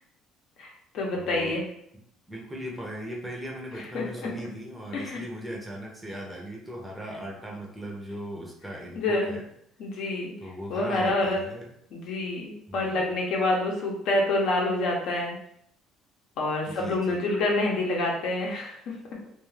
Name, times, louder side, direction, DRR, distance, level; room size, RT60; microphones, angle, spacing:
voice 1, 0.6-1.6 3.9-4.3 4.9-5.2 9.0-9.3 9.8-10.3 10.7-11.4 11.9-15.4 16.4-18.9, left 2 dB, 65° left, -1 dB, 0.7 m, -27 dB
voice 2, 1.1-1.6 2.3-9.5 10.4-11.7 12.7-13.1 16.7-17.2, equal, 5° right, -2 dB, 0.6 m, -38 dB
2.4 x 2.3 x 3.1 m, 0.70 s
cardioid pair, 125°, 0 cm